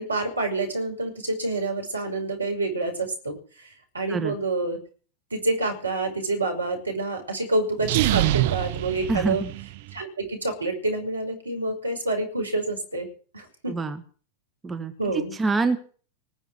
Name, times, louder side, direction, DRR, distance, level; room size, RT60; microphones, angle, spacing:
voice 1, 0.0-4.8 5.3-9.4 9.9-13.1 13.3-13.7 15.0-15.4, right 2 dB, 80° right, 3 dB, 5.8 m, -28 dB
sound 1, 7.8-9.9, right 15 dB, 50° right, 1.2 m, -25 dB
voice 2, 9.1-9.5 13.7-14.0 14.6-15.8, right 3 dB, 15° right, 7 dB, 1.6 m, -26 dB
20.0 x 7.3 x 9.5 m, 0.42 s
figure-of-eight pair, 90°, 0 cm